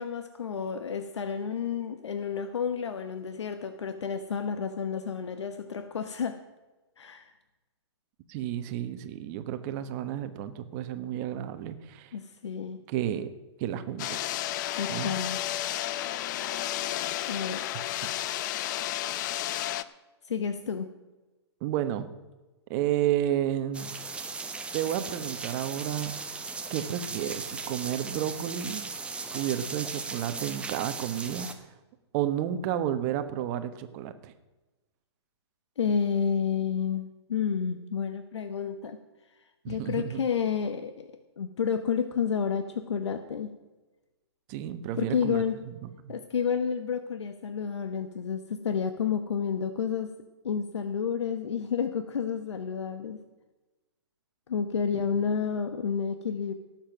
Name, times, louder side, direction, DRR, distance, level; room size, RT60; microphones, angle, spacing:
voice 1, 0.0-6.4 7.0-7.3 12.1-12.8 14.8-15.4 17.3-17.8 20.3-20.9 35.8-39.0 39.3-43.5 45.0-45.6 46.1-50.1 50.4-53.2 54.5-56.5, left 7 dB, 80° left, 9 dB, 1.0 m, -30 dB
voice 2, 8.3-12.1 12.9-13.3 13.6-14.2 14.9-15.1 18.0-18.1 21.6-22.2 22.7-23.9 24.7-26.1 26.7-28.9 29.3-31.7 32.1-34.3 39.6-40.2 44.5-45.4 45.8-46.1 54.9-55.0, right 11 dB, 35° right, 10 dB, 1.2 m, -31 dB
sound 1, 14.0-19.8, left 13 dB, 40° left, 0.6 m, -32 dB
sound 2, 23.7-31.5, right 4 dB, 5° right, 0.9 m, -37 dB
17.5 x 7.4 x 6.0 m, 1.1 s
hypercardioid pair, 130°, 14 cm